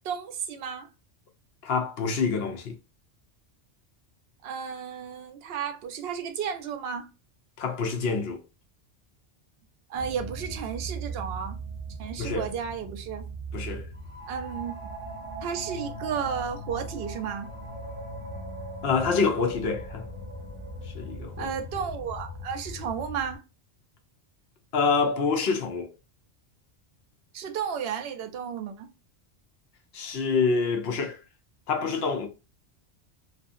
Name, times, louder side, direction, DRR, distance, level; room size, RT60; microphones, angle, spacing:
voice 1, 0.0-0.9 4.4-7.1 9.9-11.6 12.0-13.2 14.3-14.7 15.4-17.5 21.4-23.4 27.3-28.9, right 7 dB, 70° right, 0.7 m, -33 dB
voice 2, 1.6-2.8 7.6-8.4 12.2-12.5 13.5-13.9 18.8-20.1 20.8-21.5 24.7-25.9 29.9-31.2 31.7-32.3, left 4 dB, 65° left, 0.9 m, -26 dB
sound 1, 9.9-23.4, right 2 dB, 20° right, 0.3 m, -39 dB
2.7 x 2.4 x 2.4 m
omnidirectional pair, 1.1 m